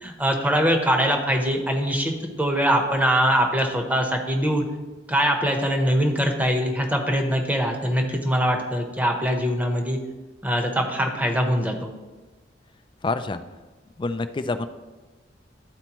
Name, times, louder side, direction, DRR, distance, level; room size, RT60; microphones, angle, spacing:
voice 1, 0.0-2.1 2.4-4.7 5.1-10.0 10.4-11.9, equal, 10° right, 3 dB, 0.8 m, -22 dB
voice 2, 13.0-13.4 14.0-14.7, left 3 dB, 25° left, 10 dB, 0.3 m, -27 dB
12.5 x 4.4 x 3.0 m, 1.2 s
head